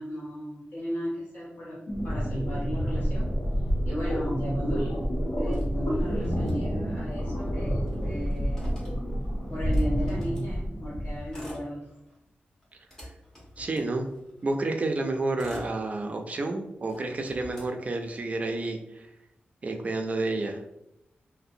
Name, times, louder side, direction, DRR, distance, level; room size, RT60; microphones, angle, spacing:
voice 1, 0.0-1.8 2.0-3.4 3.9-5.0 5.4-8.8 9.5-11.9, equal, 60° left, -9 dB, 0.8 m, -35 dB
sound 1, 1.9-11.3, equal, 85° left, 0.9 m, -29 dB
Motor vehicle (road), 5.5-7.1 7.4-7.5 7.7-10.5 11.2-12.2 12.6-14.4 15.0-16.4 16.8-18.4, equal, 15° left, 0.8 m, -46 dB
voice 2, 13.6-14.0 14.4-19.1 19.6-20.6, right 2 dB, 40° right, 4 dB, 0.3 m, -30 dB
2.6 x 2.0 x 2.5 m, 0.84 s
wide cardioid pair, 120°, 4 cm